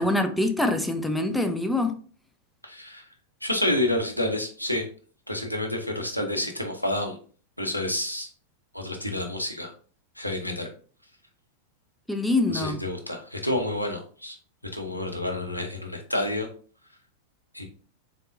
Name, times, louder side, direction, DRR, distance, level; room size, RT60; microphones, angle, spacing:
voice 1, 0.0-2.0 12.1-12.8, left 2 dB, 5° left, 0.5 m, -24 dB
voice 2, 2.6-3.1 3.4-4.9 5.3-7.2 7.6-8.3 8.7-9.7 10.2-10.7 12.5-14.4 14.7-16.5 17.5-17.6, left 1 dB, 90° left, 0.7 m, -29 dB
4.1 x 3.6 x 2.5 m
figure-of-eight pair, 90°, 0 cm